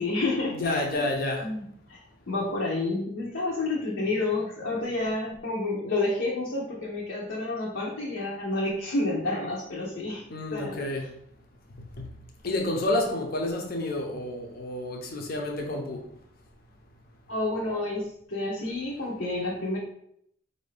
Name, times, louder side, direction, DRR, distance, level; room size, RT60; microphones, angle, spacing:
voice 1, 0.0-1.0 1.4-1.6 1.9-2.0 2.3-10.2 10.5-11.1 17.3-19.8, left 2 dB, 85° left, -5 dB, 0.9 m, -29 dB
voice 2, 0.5-1.5 10.3-11.1 12.0-12.1 12.4-16.0, left 2 dB, 50° left, 1 dB, 0.6 m, -29 dB
4.6 x 2.7 x 3.3 m, 0.69 s
head